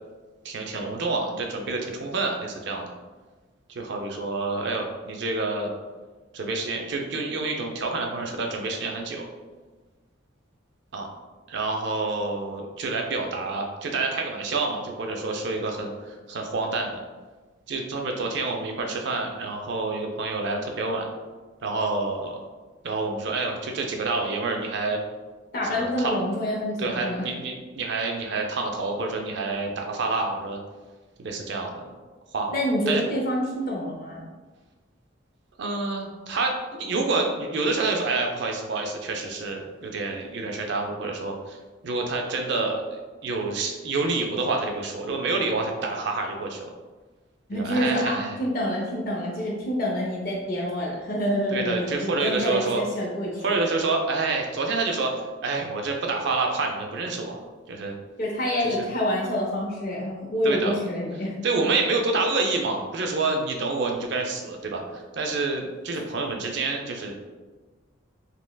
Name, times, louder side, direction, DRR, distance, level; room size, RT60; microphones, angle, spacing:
voice 1, 0.4-2.9 3.7-5.7 6.3-9.3 10.9-11.1 11.5-17.0 17.7-21.1 21.6-22.4 22.8-25.0 25.8-26.1 26.8-30.6 31.2-31.8 32.3-32.5 32.9-33.0 35.6-41.6 41.8-42.8 43.2-46.7 47.5-48.4 51.5-52.8 53.4-55.1 55.4-58.0 58.8-58.9 60.4-60.8 61.4-67.2, right 3 dB, 55° right, 2 dB, 0.4 m, -28 dB
voice 2, 25.5-27.3 32.5-34.2 47.5-53.6 58.2-61.4 65.9-66.0, equal, 45° left, -4 dB, 0.5 m, -27 dB
3.3 x 2.9 x 2.2 m, 1.3 s
head